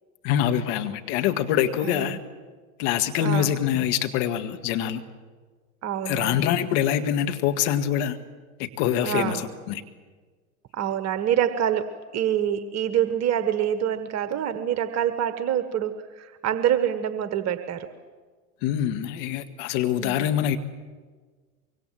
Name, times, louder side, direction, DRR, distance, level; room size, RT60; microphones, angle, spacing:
voice 1, 0.2-2.2 2.8-5.0 6.1-8.2 8.6-9.8 18.6-20.6, left 10 dB, 55° left, 8 dB, 2.0 m, -25 dB
voice 2, 1.8-2.2 3.2-3.5 5.8-6.4 9.0-9.5 10.7-17.9 20.0-20.2, right 10 dB, 40° right, 11 dB, 1.5 m, -26 dB
25.0 x 23.5 x 7.7 m, 1.5 s
hypercardioid pair, 85°, 43 cm